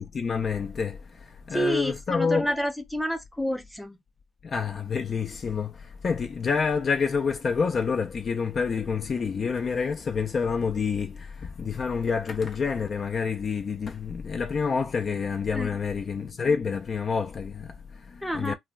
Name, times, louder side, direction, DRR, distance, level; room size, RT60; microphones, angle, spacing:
voice 1, 0.0-2.5 4.4-18.5, left 5 dB, 45° left, 0.3 m, -28 dB
voice 2, 1.5-4.0 15.5-15.8 18.2-18.5, equal, ahead, 0.7 m, -29 dB
2.2 x 2.0 x 3.5 m
cardioid pair, 90°, 0 cm